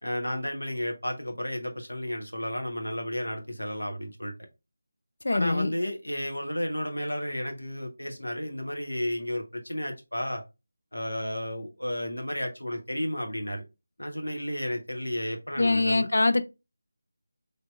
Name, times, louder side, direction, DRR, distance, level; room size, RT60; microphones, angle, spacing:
voice 1, 0.0-4.3 5.3-10.4 10.9-13.6 14.0-16.1, equal, 80° left, 0.9 m, -32 dB
voice 2, 5.2-5.7 15.6-16.4, left 2 dB, 55° left, 0.4 m, -23 dB
3.3 x 2.7 x 2.4 m
figure-of-eight pair, 160°, 0 cm